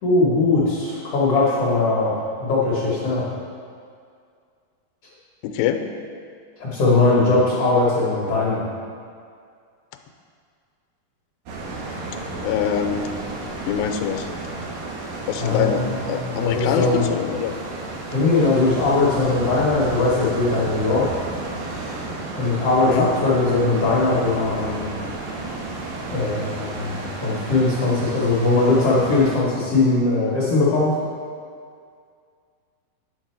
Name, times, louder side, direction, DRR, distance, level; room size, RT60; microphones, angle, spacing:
voice 1, 0.0-3.3 6.6-8.7 15.3-17.1 18.1-21.1 22.3-24.9 26.1-30.9, left 3 dB, 65° left, -6 dB, 1.5 m, -20 dB
voice 2, 5.4-5.8 12.4-13.2 13.7-14.3 15.3-17.6 22.8-23.1, left 8 dB, 80° left, 5 dB, 2.3 m, -24 dB
sound 1, 11.5-29.4, right 2 dB, 70° right, 2.4 m, -32 dB
9.7 x 7.0 x 4.4 m, 2.2 s
omnidirectional pair, 4.5 m